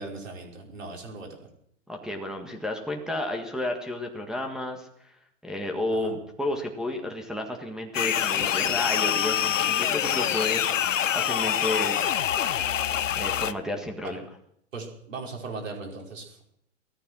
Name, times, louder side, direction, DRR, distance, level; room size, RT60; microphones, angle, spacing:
voice 1, 0.0-1.4 5.9-6.1 14.0-14.2 14.7-16.4, right 3 dB, 75° right, 1 dB, 5.2 m, -38 dB
voice 2, 1.9-5.1 5.4-12.0 13.1-14.2, left 1 dB, ahead, 0 dB, 1.7 m, -32 dB
sound 1, 7.9-13.5, left 10 dB, 75° left, 0.9 m, -25 dB
17.0 x 14.0 x 6.2 m, 0.71 s
hypercardioid pair, 120°, 38 cm